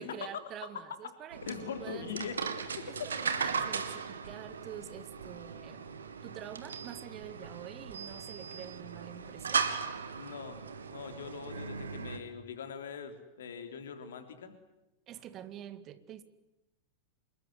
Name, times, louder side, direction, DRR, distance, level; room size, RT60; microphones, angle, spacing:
voice 1, 0.0-2.1 2.9-5.8 6.2-9.7 15.1-16.2, right 10 dB, 35° right, 12 dB, 2.2 m, -47 dB
sound 1, 1.3-12.2, right 6 dB, 70° right, 2.2 m, -38 dB
voice 2, 1.5-2.4 10.2-10.6 10.9-14.5, left 6 dB, 65° left, 7 dB, 3.5 m, -42 dB
27.0 x 21.5 x 9.8 m, 0.95 s
figure-of-eight pair, 90°, 0 cm